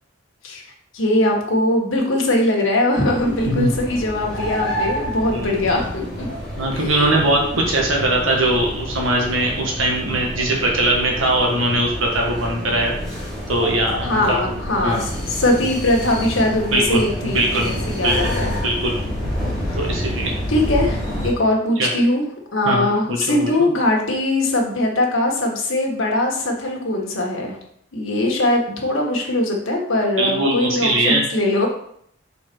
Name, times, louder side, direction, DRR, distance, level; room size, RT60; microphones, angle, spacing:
voice 1, 0.9-6.3 6.7-7.5 14.0-15.1 15.4-18.5 19.0-19.1 20.5-22.2 22.5-27.6 27.9-31.7, left 1 dB, 85° left, 0 dB, 1.6 m, -21 dB
sound 1, 3.1-21.3, equal, ahead, 2.0 m, -28 dB
voice 2, 6.6-12.9 13.5-14.6 14.8-15.1 16.7-17.7 18.0-19.0 19.8-20.4 21.8-21.9 22.6-23.5 28.7-28.8 30.2-31.2, right 1 dB, 80° right, -1 dB, 1.5 m, -21 dB
5.6 x 4.3 x 4.6 m, 0.68 s
head